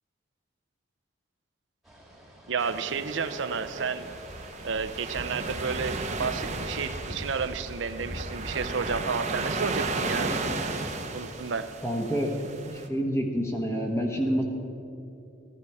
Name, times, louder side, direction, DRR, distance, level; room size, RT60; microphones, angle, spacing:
sound 1, 1.8-11.8, equal, ahead, 1.7 m, -44 dB
voice 1, 2.5-4.1 4.6-10.3 11.1-11.7, right 5 dB, 70° right, 11 dB, 0.6 m, -31 dB
sound 2, 2.6-12.9, right 3 dB, 35° right, 0.8 m, -34 dB
voice 2, 11.8-14.4, equal, 15° left, 1 dB, 1.1 m, -28 dB
14.5 x 11.0 x 4.8 m, 2.8 s
head